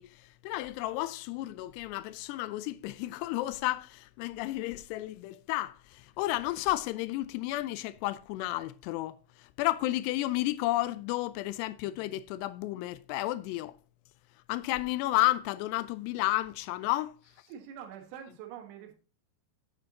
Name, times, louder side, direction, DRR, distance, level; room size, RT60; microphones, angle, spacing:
voice 1, 0.0-13.8 14.5-17.2, left 16 dB, 85° left, 2.4 m, -32 dB
voice 2, 17.5-18.9, right 9 dB, 70° right, 3.6 m, -45 dB
9.2 x 8.8 x 2.8 m
omnidirectional pair, 5.3 m